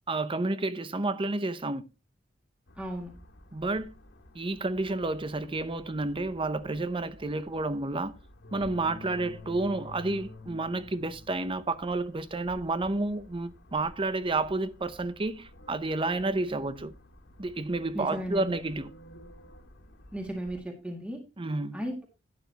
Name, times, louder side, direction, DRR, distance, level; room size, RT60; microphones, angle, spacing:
voice 1, 0.1-1.9 3.5-3.9 4.3-8.1 8.5-16.9 17.4-18.9 21.4-21.8, right 2 dB, 25° right, 0.7 m, -30 dB
sound 1, 2.7-20.6, left 2 dB, 70° left, 2.0 m, -51 dB
voice 2, 2.8-3.1 17.9-18.5 20.1-21.2 21.7-22.1, equal, 5° right, 2.0 m, -35 dB
12.0 x 9.3 x 2.9 m
head